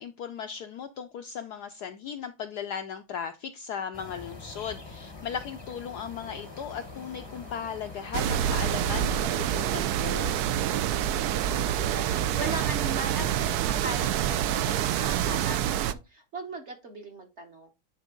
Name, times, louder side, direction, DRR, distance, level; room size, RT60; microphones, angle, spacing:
voice 1, 0.0-10.4, left 7 dB, 75° left, 8 dB, 0.9 m, -37 dB
sound 1, 3.9-9.6, left 3 dB, 25° left, 0.6 m, -45 dB
voice 2, 5.9-6.4 11.5-12.1 12.4-17.7, right 2 dB, 45° right, 4 dB, 1.0 m, -39 dB
sound 2, 6.1-11.1, right 2 dB, 75° right, 4.0 m, -53 dB
sound 3, 8.1-15.9, right 10 dB, 90° right, 0.8 m, -27 dB
10.0 x 4.0 x 3.7 m, 0.25 s
omnidirectional pair, 2.2 m